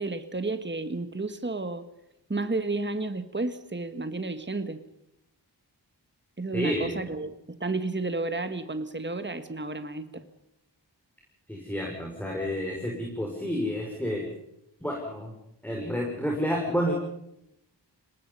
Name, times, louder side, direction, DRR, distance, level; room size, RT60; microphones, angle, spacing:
voice 1, 0.0-1.8 2.3-4.8 6.4-10.2, right 3 dB, 25° right, 10 dB, 1.6 m, -32 dB
voice 2, 6.5-7.1 11.5-14.2 14.8-15.3 15.6-16.9, equal, 5° left, -1 dB, 6.0 m, -30 dB
26.0 x 19.5 x 5.6 m, 0.82 s
wide cardioid pair, 50°, 43 cm